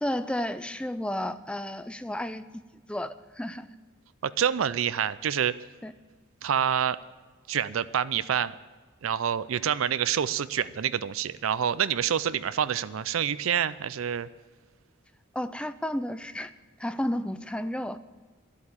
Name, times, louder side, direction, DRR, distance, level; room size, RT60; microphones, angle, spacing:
voice 1, 0.0-2.6 2.9-3.7 5.8-5.9 15.3-16.5 16.8-18.0, left 1 dB, 5° left, 12 dB, 0.4 m, -32 dB
voice 2, 4.2-5.5 6.4-7.0 7.5-8.6 9.0-14.3, right 8 dB, 80° right, 15 dB, 0.4 m, -27 dB
11.5 x 8.3 x 8.7 m, 1.3 s
head